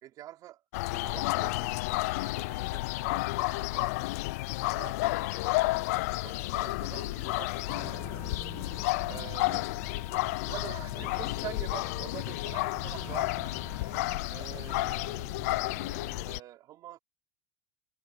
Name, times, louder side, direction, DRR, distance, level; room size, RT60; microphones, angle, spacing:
voice 1, 0.0-0.6 0.9-4.1 4.7-5.8 6.0-8.0 9.1-9.7 10.5-13.4 14.3-15.3 15.6-17.0, right 14 dB, 50° right, 3.1 m, -46 dB
sound 1, 0.7-16.4, left 21 dB, 80° left, 0.4 m, -31 dB
Wind instrument woodwind instrument, 7.6-14.0, left 15 dB, 55° left, 1.7 m, -50 dB
sound 2, 7.7-16.2, right 10 dB, 35° right, 0.5 m, -50 dB
supercardioid pair, 115°, 8 cm